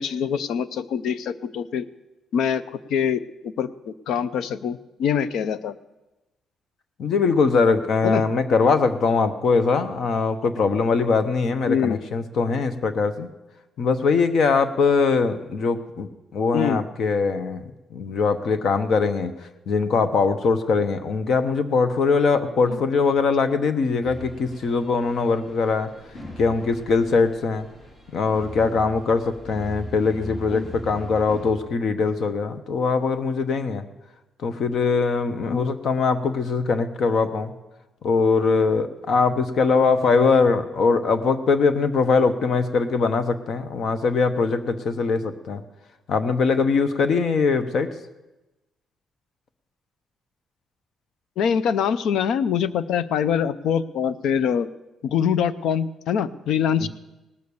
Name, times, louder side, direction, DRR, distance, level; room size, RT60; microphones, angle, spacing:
voice 1, 0.0-1.9 2.3-5.8 8.0-8.2 11.7-12.0 16.5-16.8 22.7-22.8 30.5-30.7 35.5-35.6 51.4-54.7 55.0-56.9, left 8 dB, 80° left, 16 dB, 0.6 m, -24 dB
voice 2, 7.0-13.3 13.8-17.6 17.9-19.4 19.7-25.9 26.4-27.7 28.1-33.8 34.4-37.5 38.0-45.6 46.1-47.9 56.8-56.9, left 4 dB, 55° left, 10 dB, 1.0 m, -21 dB
sound 1, 24.0-31.5, equal, 40° left, 4.8 m, -40 dB
18.5 x 6.6 x 7.0 m, 1.0 s
cardioid pair, 130°, 0 cm